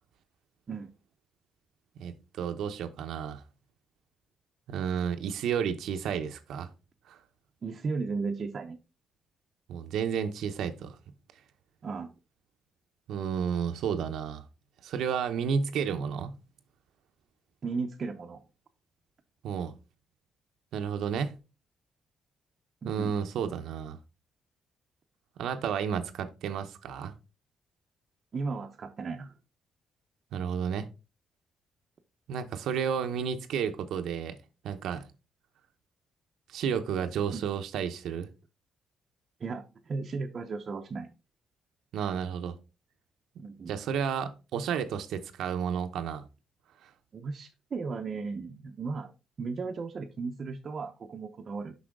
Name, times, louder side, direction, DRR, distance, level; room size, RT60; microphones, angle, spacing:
voice 1, 2.0-3.4 4.7-6.7 7.1-7.2 9.7-11.0 13.1-14.4 14.8-16.4 19.4-19.7 20.7-21.3 22.8-24.0 25.4-27.1 30.3-30.9 32.3-34.4 34.6-35.1 36.5-38.3 41.9-42.6 43.7-46.3 46.8-46.9, right 7 dB, 80° right, 0.8 m, -32 dB
voice 2, 7.6-8.8 11.8-12.1 17.6-18.4 22.8-23.1 28.3-29.3 37.3-37.5 39.4-41.1 43.4-43.7 47.1-49.1 49.4-51.7, right 4 dB, 45° right, 0.7 m, -35 dB
6.2 x 5.6 x 3.6 m
cardioid pair, 100°, 0 cm